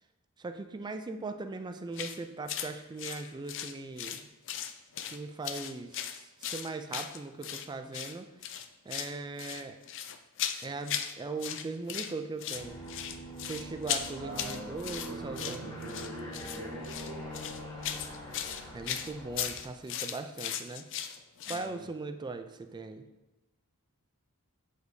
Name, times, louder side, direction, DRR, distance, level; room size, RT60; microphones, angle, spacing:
voice 1, 0.4-4.3 5.1-8.3 8.9-9.8 10.6-12.8 13.4-15.9 18.7-20.8 21.5-23.0, right 3 dB, 20° right, 8 dB, 0.3 m, -39 dB
sound 1, 1.9-2.2 2.5-2.7 3.0-4.2 4.5-5.2 5.4-7.7 7.9-8.1 8.4-9.1 9.4-11.1 11.4-12.1 12.4-21.7, left 9 dB, 55° left, 0.4 m, -37 dB
Aircraft, 12.5-19.9, equal, 20° left, 1.3 m, -43 dB
voice 2, 14.2-17.5 21.4-21.8, right 2 dB, 50° right, -1 dB, 1.2 m, -45 dB
7.9 x 5.0 x 2.7 m, 1.0 s
head